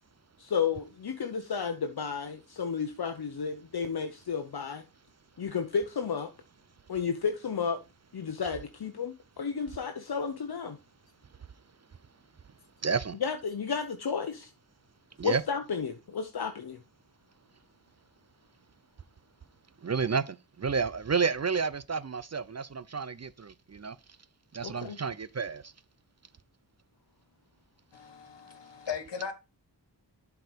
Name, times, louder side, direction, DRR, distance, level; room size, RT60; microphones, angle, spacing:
voice 1, 0.4-4.8 5.4-6.3 6.9-7.8 8.1-10.8 13.2-14.5 15.2-16.8 24.6-25.0, left 6 dB, 60° left, 0.9 m, -32 dB
voice 2, 12.8-13.2 15.2-15.4 19.8-24.0 24.5-25.7, right 5 dB, 40° right, 0.6 m, -31 dB
voice 3, 27.9-29.3, left 6 dB, 75° left, 1.6 m, -38 dB
7.9 x 4.8 x 5.0 m
wide cardioid pair, 55°, 43 cm